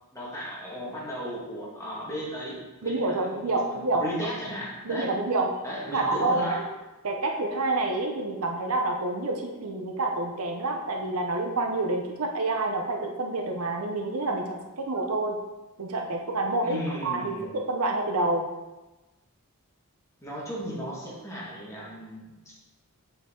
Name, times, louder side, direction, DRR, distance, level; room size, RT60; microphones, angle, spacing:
voice 1, 0.1-5.1 5.6-6.6 16.6-17.5 20.2-22.6, equal, 15° left, -5 dB, 1.9 m, -36 dB
voice 2, 2.8-4.0 4.8-5.5 5.9-6.6 7.0-15.4 15.8-18.5, right 2 dB, 70° right, 2 dB, 0.8 m, -28 dB
8.1 x 4.5 x 3.8 m, 1.1 s
head